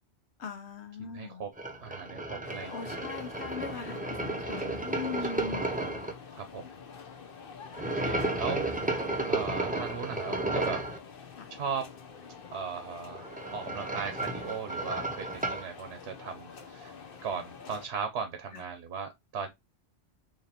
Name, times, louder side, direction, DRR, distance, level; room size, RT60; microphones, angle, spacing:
voice 1, 0.4-1.4 2.7-5.7 11.4-11.5 18.5-18.6, left 6 dB, 85° left, 1.1 m, -40 dB
voice 2, 1.0-1.5 1.8-2.9 5.2-5.7 6.3-6.7 7.9-8.7 9.2-10.8 11.5-11.9 12.5-16.9 17.2-19.5, right 6 dB, 80° right, 1.0 m, -37 dB
sound 1, 1.6-6.1 7.7-11.0 13.1-15.7, right 2 dB, 10° right, 0.4 m, -33 dB
sound 2, 2.4-17.9, left 5 dB, 60° left, 0.9 m, -48 dB
4.0 x 2.8 x 2.8 m
omnidirectional pair, 1.1 m